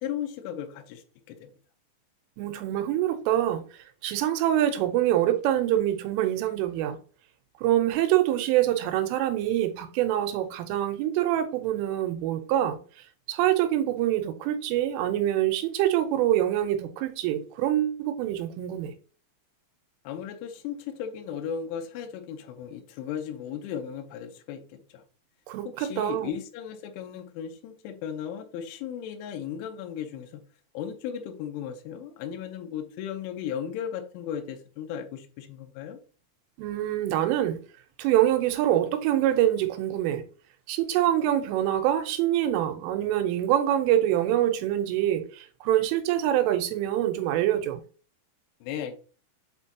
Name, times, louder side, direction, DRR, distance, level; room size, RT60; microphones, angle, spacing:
voice 1, 0.0-1.0 1.3-1.5 20.0-25.0 25.7-30.4 30.7-36.0 48.6-48.9, left 8 dB, 85° left, 3.2 m, -36 dB
voice 2, 2.4-3.6 4.0-7.0 7.6-12.8 13.3-18.9 25.5-26.3 36.6-37.6 38.0-40.2 40.7-47.8, right 12 dB, 90° right, 3.4 m, -25 dB
8.1 x 4.5 x 2.8 m
omnidirectional pair, 5.6 m